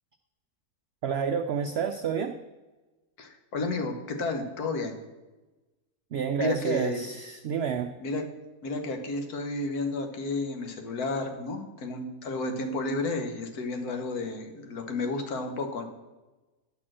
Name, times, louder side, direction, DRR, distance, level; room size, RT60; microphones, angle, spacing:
voice 1, 1.0-2.4 6.1-7.9, right 7 dB, 90° right, 8 dB, 0.5 m, -29 dB
voice 2, 3.2-5.0 6.4-7.0 8.0-8.2 8.6-15.8, left 3 dB, 75° left, 4 dB, 1.6 m, -32 dB
10.5 x 4.3 x 7.4 m, 1.2 s
omnidirectional pair, 1.6 m